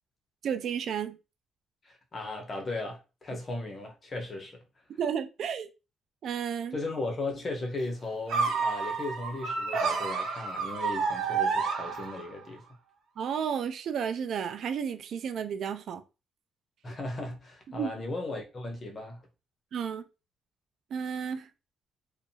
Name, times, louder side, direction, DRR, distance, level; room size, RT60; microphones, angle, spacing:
voice 1, 0.4-1.2 5.0-5.7 6.2-6.8 13.2-16.0 17.7-17.9 19.7-20.0 20.9-21.5, right 7 dB, 65° right, 0.4 m, -32 dB
voice 2, 1.8-4.6 6.7-12.6 16.8-19.2, left 2 dB, 40° left, 1.0 m, -36 dB
sound 1, 8.3-12.4, right 5 dB, 85° right, 0.8 m, -30 dB
2.7 x 2.5 x 2.7 m
cardioid pair, 90°, 0 cm